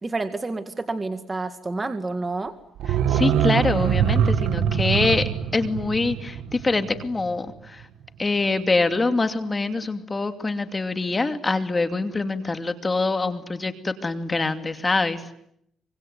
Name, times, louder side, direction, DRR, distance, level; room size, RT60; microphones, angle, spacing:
voice 1, 0.0-2.5, right 3 dB, 25° right, 8 dB, 2.1 m, -29 dB
sound 1, 2.8-7.5 7.8-7.9, right 9 dB, 85° right, 1.5 m, -23 dB
voice 2, 2.9-7.9 8.2-15.3, left 3 dB, 25° left, 8 dB, 2.6 m, -25 dB
25.0 x 24.0 x 9.5 m, 0.73 s
cardioid pair, 90°, 0 cm